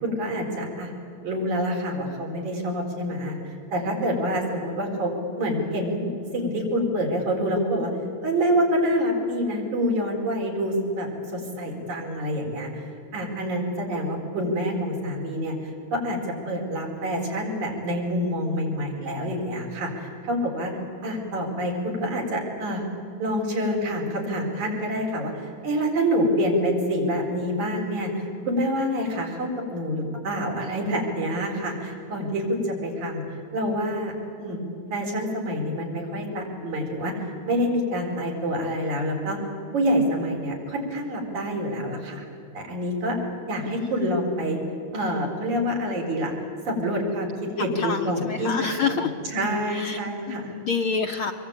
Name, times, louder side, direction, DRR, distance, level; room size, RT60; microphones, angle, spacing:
voice 1, 0.0-0.9 1.2-3.4 3.7-5.1 5.3-7.9 8.2-12.7 13.1-16.2 16.5-20.7 21.0-22.9 23.2-33.2 33.5-34.6 34.9-39.4 39.7-42.3 42.5-43.2 43.5-44.6 44.9-46.3 46.7-48.5 49.3-50.5, equal, 80° right, -1 dB, 6.2 m, -27 dB
voice 2, 43.7-44.2 47.6-49.1 49.7-50.0 50.3-51.3, left 5 dB, 70° left, 5 dB, 1.3 m, -28 dB
26.0 x 22.5 x 9.1 m, 2.7 s
omnidirectional pair, 3.4 m